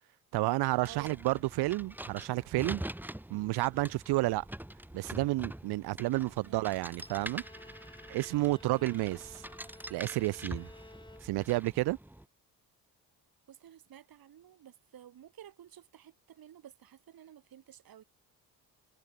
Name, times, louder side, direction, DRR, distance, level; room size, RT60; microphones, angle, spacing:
voice 1, 0.3-2.8 3.3-4.5 4.9-7.4 8.1-9.4 9.9-10.7 11.2-12.0, right 19 dB, 80° right, 0.6 m, -31 dB
sound 1, 0.7-12.2, right 1 dB, 5° right, 2.3 m, -45 dB
voice 2, 6.4-6.8 8.6-8.9 13.5-18.0, right 10 dB, 65° right, 6.4 m, -53 dB
Bowed string instrument, 7.0-11.7, left 2 dB, 10° left, 4.5 m, -54 dB
cardioid pair, 105°, 38 cm